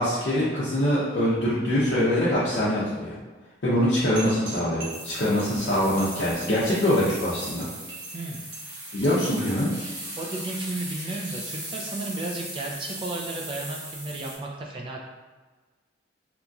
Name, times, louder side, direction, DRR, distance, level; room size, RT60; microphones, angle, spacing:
voice 1, 0.0-3.1 3.6-7.7 8.9-9.7, equal, 60° left, -9 dB, 0.6 m, -24 dB
sound 1, 4.2-9.3, right 4 dB, 80° right, 0.8 m, -42 dB
sound 2, 4.9-14.4, right 1 dB, 60° right, 1.2 m, -38 dB
voice 2, 8.1-8.4 10.2-15.0, right 2 dB, 25° right, -1 dB, 0.4 m, -33 dB
2.9 x 2.5 x 2.3 m, 1.3 s
head